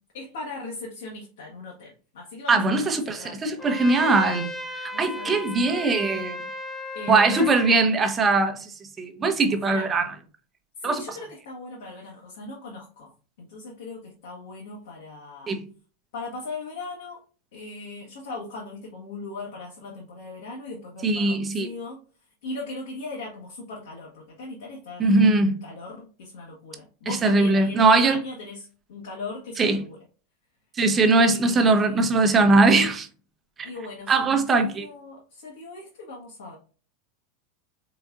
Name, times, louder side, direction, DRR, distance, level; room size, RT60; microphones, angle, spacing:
voice 1, 0.1-3.7 4.9-5.8 6.9-7.6 9.5-10.0 10.8-13.1 13.4-15.6 16.1-17.2 17.5-22.0 22.4-25.0 25.5-30.0 31.0-32.1 33.6-36.6, left 3 dB, 60° left, 1.1 m, -39 dB
voice 2, 2.5-4.5 4.8-6.4 7.1-10.1 10.8-11.0 15.5-15.6 21.0-21.7 25.0-25.6 27.1-28.2 29.6-29.8 30.8-33.1 34.1-34.9, right 3 dB, 25° right, 0.8 m, -21 dB
Trumpet, 3.6-7.9, left 1 dB, 10° left, 0.8 m, -35 dB
4.4 x 3.9 x 2.5 m
figure-of-eight pair, 85°, 0 cm